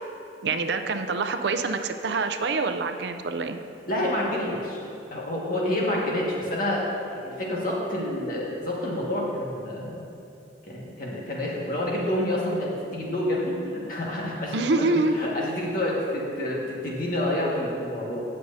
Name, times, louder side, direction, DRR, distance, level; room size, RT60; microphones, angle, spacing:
voice 1, 0.4-3.6 14.5-15.1, right 3 dB, 75° right, 8 dB, 0.5 m, -26 dB
voice 2, 3.9-4.8 5.1-10.0 10.7-18.2, left 1 dB, 55° left, -4 dB, 1.7 m, -28 dB
16.5 x 6.4 x 2.7 m, 2.6 s
head